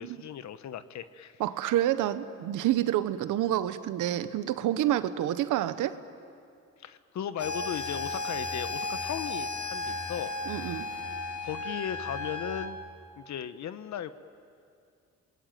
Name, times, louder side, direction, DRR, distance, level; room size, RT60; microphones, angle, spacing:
voice 1, 0.0-1.4 6.8-10.3 10.6-10.7 11.4-12.8 13.2-14.1, left 9 dB, 65° left, 12 dB, 1.1 m, -37 dB
voice 2, 1.4-6.0 10.5-10.9, right 12 dB, 85° right, 12 dB, 1.1 m, -28 dB
sound 1, 7.4-12.7, left 3 dB, 50° left, 2.6 m, -34 dB
28.0 x 21.5 x 9.1 m, 2.4 s
cardioid pair, 90°, 30 cm